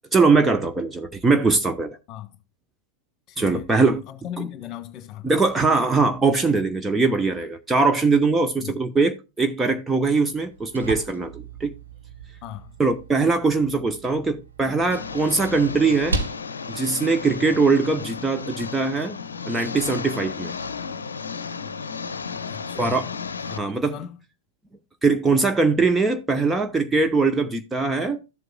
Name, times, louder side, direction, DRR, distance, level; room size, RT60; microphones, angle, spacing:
voice 1, 0.1-2.0 3.4-4.0 4.4-4.5 5.2-11.7 12.8-16.2 16.7-19.2 19.5-20.5 22.8-23.1 23.6-24.0 25.0-28.2, right 3 dB, 10° right, 0.8 m, -21 dB
voice 2, 3.3-5.3 8.6-8.8 12.4-12.7 22.4-23.1 23.4-24.2, left 11 dB, 35° left, 1.7 m, -37 dB
sound 1, 10.3-18.3, right 2 dB, 75° right, 1.6 m, -36 dB
Engine, 14.9-23.6, left 5 dB, 70° left, 0.7 m, -33 dB
13.5 x 7.7 x 2.2 m
figure-of-eight pair, 90°, 0 cm